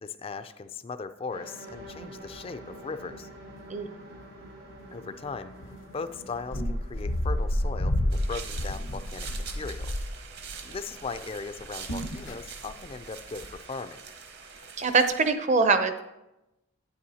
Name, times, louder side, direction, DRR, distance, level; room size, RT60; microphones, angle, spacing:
voice 1, 0.0-3.3 4.9-5.5 5.9-9.9 10.6-14.0, left 4 dB, 25° left, 11 dB, 0.3 m, -38 dB
sound 1, 1.3-9.7, right 1 dB, 80° right, 3.3 m, -48 dB
sound 2, 1.7-2.4 2.7-2.8 3.1-3.6 4.2-4.4 4.7-4.8 5.6-5.8 6.3-11.1 11.4-13.1 13.4-13.6, left 1 dB, 70° left, 0.8 m, -30 dB
sound 3, 8.1-15.3, right 6 dB, 50° right, 0.9 m, -44 dB
voice 2, 14.8-16.0, right 4 dB, 35° right, 9 dB, 0.6 m, -23 dB
11.0 x 9.0 x 2.8 m, 0.95 s
head